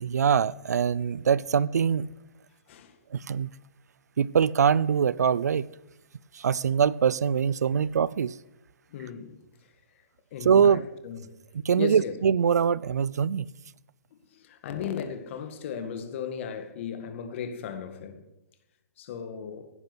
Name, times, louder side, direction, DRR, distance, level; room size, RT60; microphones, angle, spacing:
voice 1, 0.0-2.1 3.1-3.5 4.2-5.7 6.3-8.3 10.4-10.8 11.6-13.5, right 7 dB, 85° right, 0.6 m, -23 dB
voice 2, 8.9-9.4 10.3-11.4 11.7-12.1 14.3-18.2 19.0-19.7, left 7 dB, 50° left, 2.1 m, -36 dB
17.0 x 11.0 x 6.2 m
hypercardioid pair, 150°, 9 cm